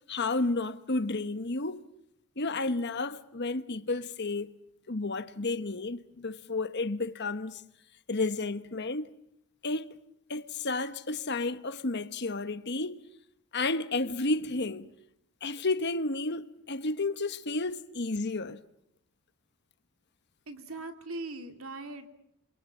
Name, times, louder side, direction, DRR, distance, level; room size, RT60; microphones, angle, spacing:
voice 1, 0.0-1.8 2.4-4.5 4.9-7.6 8.1-9.0 9.6-10.0 10.3-13.0 13.5-14.9 15.4-18.6, left 3 dB, 50° left, 1.2 m, -31 dB
voice 2, 20.5-22.1, right 2 dB, 70° right, 2.6 m, -40 dB
28.0 x 22.0 x 7.4 m
head